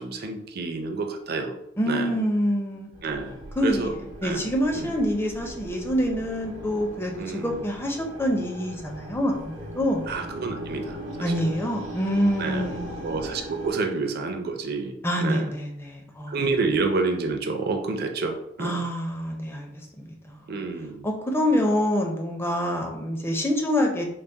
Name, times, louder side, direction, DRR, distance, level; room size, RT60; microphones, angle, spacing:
voice 1, 0.0-1.5 1.9-2.1 3.0-3.9 4.2-4.4 4.8-4.9 7.2-7.6 10.1-11.5 12.4-12.7 13.0-15.5 16.3-18.8 20.5-21.1, right 3 dB, 55° right, 5 dB, 0.5 m, -29 dB
voice 2, 1.8-2.9 3.6-10.0 11.2-13.1 15.0-16.4 18.6-19.7 20.0-20.6 21.0-24.0, equal, 10° left, 1 dB, 0.5 m, -26 dB
sound 1, 2.9-13.7, equal, 85° right, 0.7 m, -39 dB
4.0 x 2.0 x 3.4 m, 0.75 s
head